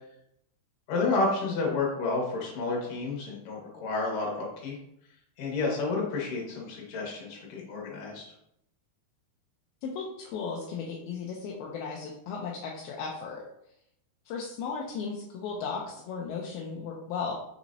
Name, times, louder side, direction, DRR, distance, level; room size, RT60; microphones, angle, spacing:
voice 1, 0.9-4.7 5.4-8.2, left 3 dB, 65° left, -2 dB, 3.1 m, -30 dB
voice 2, 9.8-13.4 14.3-17.3, left 5 dB, 80° left, -2 dB, 2.5 m, -35 dB
6.4 x 6.0 x 2.8 m, 0.77 s
omnidirectional pair, 4.5 m